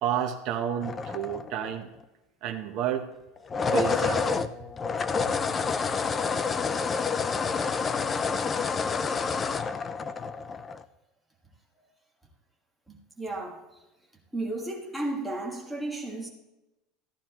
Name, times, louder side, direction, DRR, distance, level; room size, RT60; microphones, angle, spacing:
voice 1, 0.0-1.9 2.4-3.1 3.7-4.5, right 9 dB, 40° right, 0.9 m, -30 dB
sound 1, 0.8-1.8 3.4-10.8, left 5 dB, 15° left, 0.3 m, -28 dB
voice 2, 8.9-9.4 12.9-13.6 14.3-16.3, right 2 dB, 5° right, 1.5 m, -34 dB
14.5 x 10.5 x 3.0 m
supercardioid pair, 175°, 0 cm